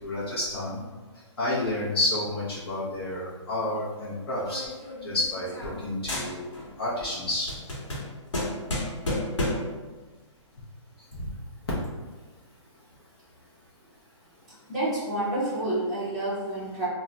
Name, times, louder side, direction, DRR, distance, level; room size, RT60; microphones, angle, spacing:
voice 1, 0.0-0.8 1.4-4.6 5.0-6.5 6.8-7.5 11.1-11.3, left 1 dB, 50° left, -7 dB, 0.7 m, -30 dB
sound 1, 4.4-5.8 6.1-6.8 7.1-9.8, left 1 dB, 70° left, 1.1 m, -32 dB
voice 2, 14.7-16.9, right 1 dB, 5° left, -14 dB, 0.6 m, -29 dB
2.3 x 2.0 x 3.8 m, 1.3 s
hypercardioid pair, 175°, 16 cm